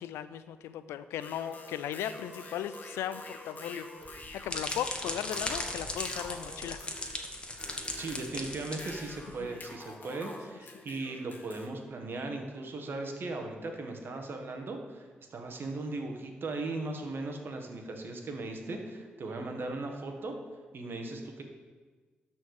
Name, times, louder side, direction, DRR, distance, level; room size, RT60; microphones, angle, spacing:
voice 1, 0.0-7.7 9.4-9.6 10.7-10.8, left 10 dB, 85° left, 13 dB, 0.4 m, -38 dB
sound 1, 1.2-11.7, left 2 dB, 40° left, 1.8 m, -47 dB
sound 2, 4.0-9.4, left 1 dB, 25° left, 1.4 m, -38 dB
voice 2, 8.0-20.4 20.7-21.4, right 2 dB, 60° right, 3 dB, 1.5 m, -38 dB
12.5 x 4.5 x 4.8 m, 1.4 s
supercardioid pair, 50°, 4 cm